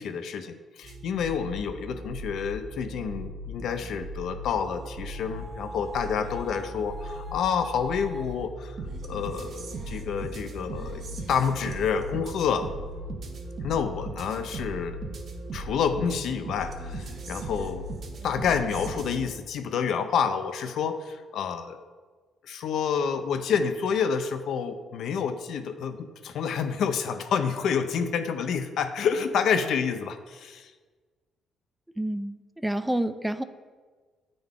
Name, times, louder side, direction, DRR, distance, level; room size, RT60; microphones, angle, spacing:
voice 1, 0.0-8.8 9.1-12.7 13.6-15.0 15.5-17.9 18.2-21.8 22.4-30.7, left 6 dB, 75° left, 8 dB, 0.5 m, -28 dB
sound 1, 0.8-19.3, right 1 dB, 55° right, 0.8 m, -38 dB
voice 2, 32.0-33.4, right 1 dB, 5° right, 11 dB, 0.3 m, -29 dB
8.7 x 3.8 x 3.6 m, 1.4 s
cardioid pair, 90°, 0 cm